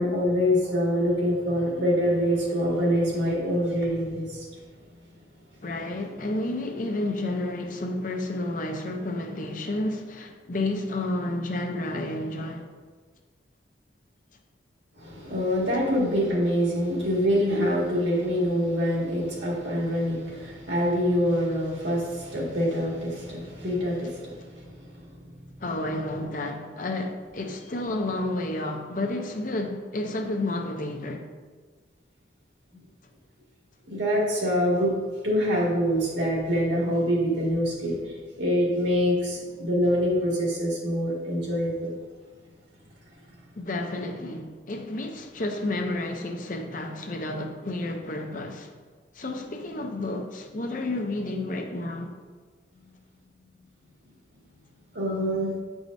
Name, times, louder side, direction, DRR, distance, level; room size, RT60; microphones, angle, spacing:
voice 1, 0.0-4.5 14.9-25.1 33.9-34.9 35.2-41.9 54.9-55.5, equal, 75° right, 1.9 m, -25 dB
voice 2, 5.6-12.7 25.6-31.2 43.6-48.7 49.1-52.1, left 2 dB, 45° left, 0.6 m, -31 dB
9.4 x 4.8 x 2.6 m
head